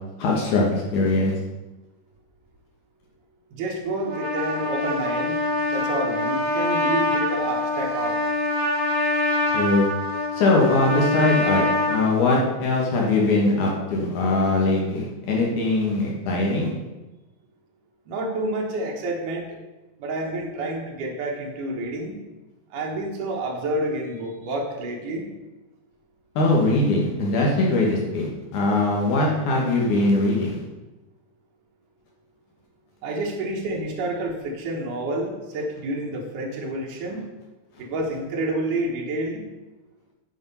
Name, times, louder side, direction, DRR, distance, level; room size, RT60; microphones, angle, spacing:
voice 1, 0.2-1.3 9.5-9.9 10.3-16.7 26.4-30.6, left 2 dB, 75° left, -2 dB, 2.8 m, -21 dB
voice 2, 3.5-5.4 5.7-8.2 18.1-19.5 20.0-22.2 22.7-25.3 33.0-37.2 37.8-39.4, right 1 dB, 80° right, -1 dB, 2.8 m, -29 dB
Trumpet, 4.0-12.0, left 1 dB, 55° right, 1.0 m, -25 dB
9.4 x 5.0 x 5.4 m, 1.1 s
omnidirectional pair, 3.6 m